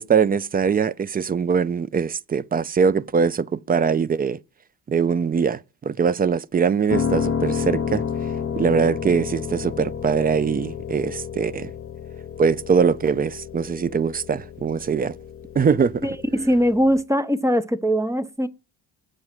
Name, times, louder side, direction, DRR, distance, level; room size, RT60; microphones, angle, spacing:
voice 1, 0.0-4.4 4.9-8.0 8.6-11.7 12.4-15.2 15.6-16.1, right 6 dB, 25° right, 0.3 m, -22 dB
Piano, 6.9-17.0, left 6 dB, 30° left, 0.8 m, -30 dB
voice 2, 16.0-18.5, equal, 5° right, 0.7 m, -21 dB
7.8 x 4.7 x 7.2 m
cardioid pair, 75°, 42 cm